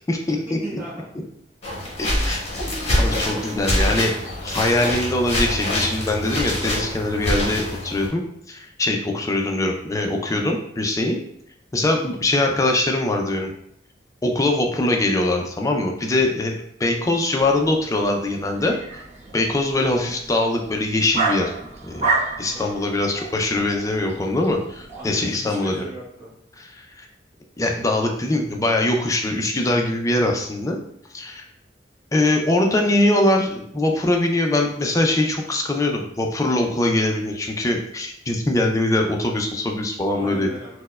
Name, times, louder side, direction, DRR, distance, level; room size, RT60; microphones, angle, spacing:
voice 1, 0.4-1.1 2.6-3.4 4.4-4.9 11.7-12.0 19.2-19.5 22.5-22.8 24.9-26.3 40.1-40.8, right 1 dB, 10° right, -10 dB, 1.1 m, -38 dB
sound 1, 1.6-8.1, left 1 dB, 35° left, 1.0 m, -25 dB
voice 2, 2.0-2.4 3.0-11.2 11.7-13.5 14.2-19.0 19.3-21.5 21.8-22.1 22.4-25.8 26.7-27.1 27.6-30.8 31.1-31.5 32.1-40.5, left 2 dB, 20° left, 2 dB, 0.3 m, -22 dB
sound 2, 17.4-25.2, right 3 dB, 35° right, 0.5 m, -31 dB
4.2 x 2.1 x 2.2 m, 0.71 s
head